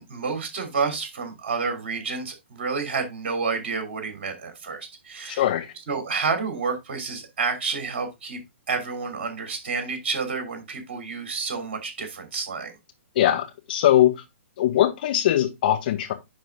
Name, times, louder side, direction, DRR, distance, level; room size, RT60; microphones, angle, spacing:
voice 1, 0.0-5.4 5.9-8.4 8.7-12.7, right 5 dB, 50° right, 2.9 m, -29 dB
voice 2, 5.3-5.7 13.1-14.2 14.6-16.1, left 12 dB, 45° left, 1.4 m, -21 dB
10.0 x 4.2 x 3.5 m
figure-of-eight pair, 120°, 7 cm